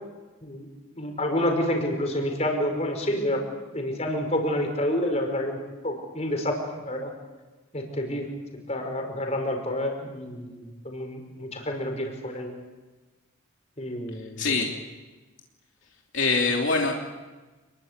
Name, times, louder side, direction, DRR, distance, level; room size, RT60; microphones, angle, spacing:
voice 1, 1.0-3.4 3.7-5.6 5.8-7.1 7.7-8.3 8.7-12.5 13.8-14.5, left 1 dB, 30° left, 3 dB, 5.4 m, -28 dB
voice 2, 16.1-16.9, left 3 dB, 60° left, 0 dB, 3.1 m, -23 dB
29.5 x 22.0 x 8.3 m, 1.2 s
head